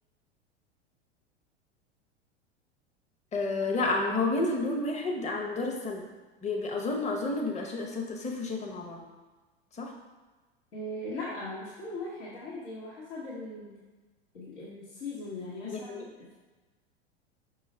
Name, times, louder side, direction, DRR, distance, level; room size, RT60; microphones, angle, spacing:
voice 1, 3.3-6.0 6.4-9.0 9.8-9.9 15.6-16.1, left 2 dB, 20° left, 1 dB, 0.8 m, -30 dB
voice 2, 10.7-13.8 14.3-16.3, left 2 dB, 85° left, -9 dB, 1.2 m, -39 dB
5.3 x 2.4 x 4.2 m, 1.2 s
hypercardioid pair, 95°, 33 cm